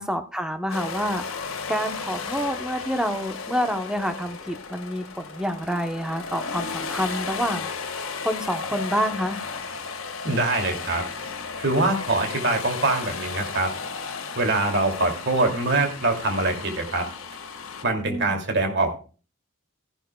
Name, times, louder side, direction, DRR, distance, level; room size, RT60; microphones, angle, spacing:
voice 1, 0.0-7.7 8.2-9.4 18.1-18.4, equal, 5° right, 7 dB, 0.9 m, -28 dB
sound 1, 0.7-17.8, left 5 dB, 70° left, 1.7 m, -34 dB
voice 2, 10.2-11.0 11.6-13.7 14.4-17.0 17.8-19.0, right 2 dB, 55° right, 4 dB, 2.5 m, -23 dB
14.5 x 11.5 x 2.3 m, 0.35 s
head